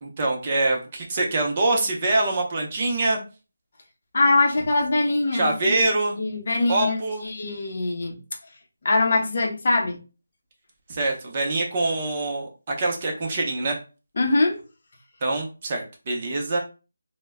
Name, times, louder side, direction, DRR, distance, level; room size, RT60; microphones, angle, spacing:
voice 1, 0.0-3.2 5.3-6.2 6.7-7.2 10.9-13.8 15.2-16.6, right 2 dB, 30° right, 0 dB, 0.6 m, -24 dB
voice 2, 4.1-5.9 6.2-8.2 8.8-10.0 14.2-14.6, left 2 dB, 50° left, 1 dB, 0.7 m, -23 dB
2.1 x 2.1 x 3.4 m, 0.32 s
figure-of-eight pair, 170°, 0 cm